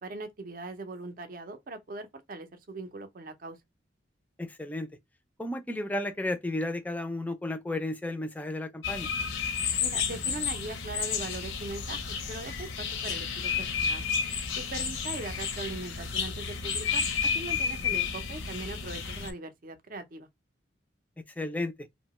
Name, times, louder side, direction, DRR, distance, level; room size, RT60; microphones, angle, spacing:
voice 1, 0.0-3.6 9.8-14.0 14.5-20.3, right 2 dB, 45° right, 0.5 m, -40 dB
voice 2, 4.4-4.9 5.4-9.1 21.4-21.7, left 1 dB, 10° left, 0.3 m, -33 dB
sound 1, 8.8-19.3, left 6 dB, 85° left, 0.7 m, -31 dB
2.7 x 2.2 x 2.9 m
head